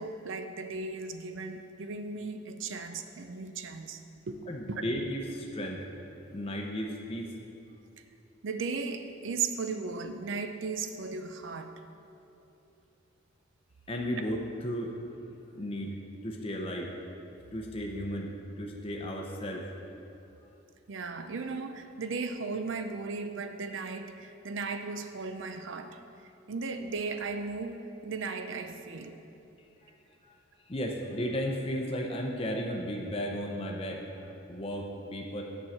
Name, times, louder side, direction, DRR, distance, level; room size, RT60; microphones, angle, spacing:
voice 1, 0.0-4.0 4.3-4.4 4.7-4.8 8.4-11.8 20.9-26.0 26.5-29.2, right 4 dB, 70° right, 8 dB, 0.5 m, -36 dB
voice 2, 4.5-5.9 6.3-7.3 13.9-14.9 15.5-16.0 16.2-16.9 17.5-18.3 18.6-19.7 29.8-29.9 30.2-30.3 30.6-35.4, equal, 30° left, 0 dB, 0.6 m, -34 dB
9.1 x 4.6 x 7.1 m, 2.8 s
head